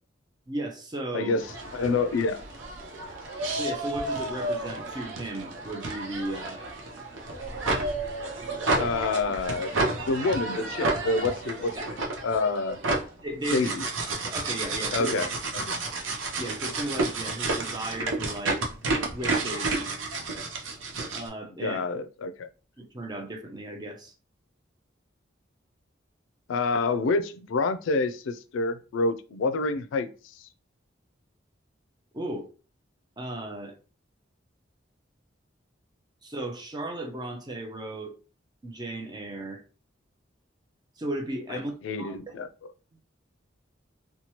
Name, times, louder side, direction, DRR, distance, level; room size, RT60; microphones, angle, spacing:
voice 1, 0.5-1.4 3.6-6.6 11.8-11.9 13.2-13.7 14.2-15.1 16.4-18.6 19.1-19.9 21.1-21.8 22.8-24.1 32.1-32.5 33.2-33.8 36.2-38.1 38.6-39.6 41.0-42.4, right 1 dB, 20° right, 0.5 m, -35 dB
voice 2, 1.1-1.5 1.7-2.4 8.8-9.8 10.1-11.9 12.2-12.8 13.5-13.8 14.9-15.8 21.6-22.5 26.5-30.1 41.5-42.5, left 3 dB, 85° left, 0.3 m, -27 dB
sound 1, 1.4-21.3, right 2 dB, 80° right, 0.6 m, -31 dB
2.9 x 2.2 x 2.8 m
head